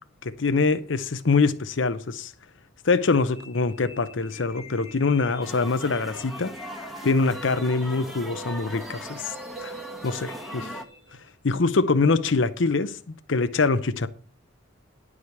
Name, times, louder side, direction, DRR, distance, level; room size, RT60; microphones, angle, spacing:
voice 1, 0.2-2.3 2.9-6.5 7.0-9.3 9.6-9.7 10.0-10.7 11.4-12.9 13.3-14.1, left 4 dB, 75° left, 0.7 m, -24 dB
sound 1, 3.3-11.3, right 1 dB, 55° right, 2.6 m, -45 dB
sound 2, 5.4-10.9, equal, ahead, 1.1 m, -39 dB
11.0 x 4.9 x 7.1 m
head